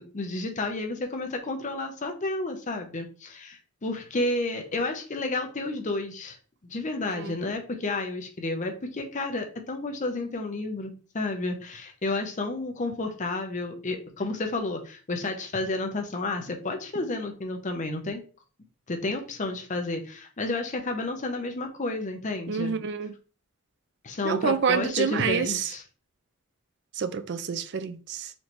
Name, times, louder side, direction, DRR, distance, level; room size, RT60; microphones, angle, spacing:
voice 1, 0.0-6.4 6.6-18.2 18.9-22.7 24.0-25.8, left 2 dB, 35° left, 0.6 m, -31 dB
voice 2, 22.5-23.1 24.2-25.7 26.9-28.3, right 6 dB, 55° right, 0.4 m, -28 dB
4.2 x 3.2 x 2.9 m
head